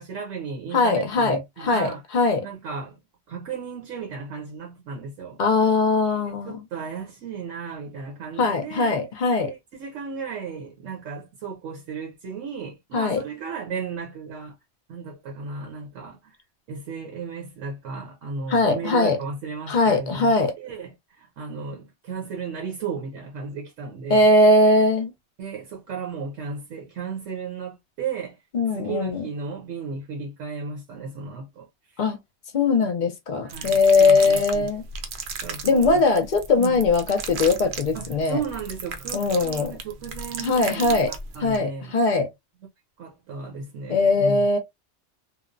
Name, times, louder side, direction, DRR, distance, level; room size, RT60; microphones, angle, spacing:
voice 1, 0.0-2.0 2.4-3.0 3.3-5.4 6.4-9.0 9.4-14.5 14.9-16.3 16.7-20.3 20.6-24.3 25.4-28.4 28.8-31.7 33.4-34.7 35.4-36.0 36.6-36.8 37.9-42.0 43.0-44.5, right 5 dB, 85° right, 1.1 m, -35 dB
voice 2, 0.7-2.5 5.4-6.6 8.4-9.5 12.9-13.2 18.5-19.2 19.7-20.5 24.1-25.1 28.5-29.3 32.0-32.2 32.5-34.8 35.6-38.4 39.1-39.7 40.4-41.1 41.4-42.3 43.9-44.6, left 3 dB, 55° left, 0.6 m, -20 dB
sound 1, 33.5-41.6, right 5 dB, 65° right, 0.8 m, -36 dB
3.0 x 2.0 x 2.5 m
omnidirectional pair, 1.3 m